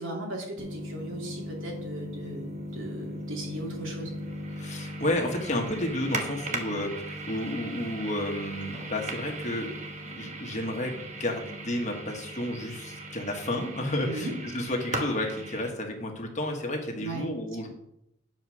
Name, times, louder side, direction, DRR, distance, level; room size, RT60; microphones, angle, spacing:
voice 1, 0.0-4.1 6.7-6.8 14.0-14.3 17.0-17.3, right 1 dB, 80° right, -1 dB, 2.6 m, -37 dB
sound 1, 0.6-15.7, right 1 dB, 35° right, 1.1 m, -38 dB
voice 2, 4.6-9.7 10.0-17.7, left 1 dB, 35° left, 1 dB, 1.5 m, -31 dB
9.5 x 4.9 x 6.2 m, 0.80 s
head